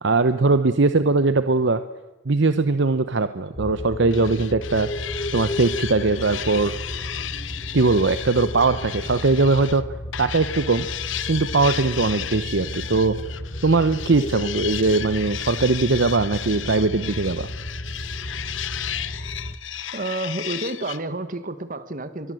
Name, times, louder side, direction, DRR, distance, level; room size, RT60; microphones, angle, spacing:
voice 1, 0.0-1.8 2.3-4.9 5.3-6.7 7.7-9.8 10.2-10.9 11.3-13.2 13.6-17.5, right 3 dB, 65° right, 11 dB, 0.8 m, -20 dB
sound 1, 3.6-19.6, left 1 dB, 30° left, 1.4 m, -33 dB
sound 2, 4.1-9.8 10.1-21.0, left 11 dB, 75° left, 0.9 m, -34 dB
voice 2, 19.9-22.3, right 2 dB, 45° right, 11 dB, 1.5 m, -30 dB
23.5 x 21.5 x 7.7 m, 1.1 s
head